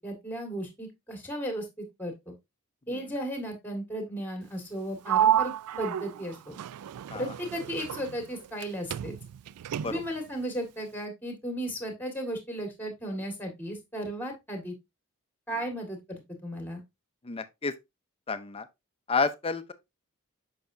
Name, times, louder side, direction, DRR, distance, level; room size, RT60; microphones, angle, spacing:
voice 1, 0.0-2.3 2.9-6.6 7.1-9.1 9.8-14.8 15.5-16.8, equal, 10° left, 1.7 m, -35 dB
Sliding door, 5.1-8.7 8.9-10.2, right 10 dB, 85° right, 0.3 m, -30 dB
voice 2, 17.2-17.7 18.3-18.7 19.1-19.7, left 4 dB, 25° left, 0.6 m, -31 dB
6.8 x 5.7 x 2.6 m
head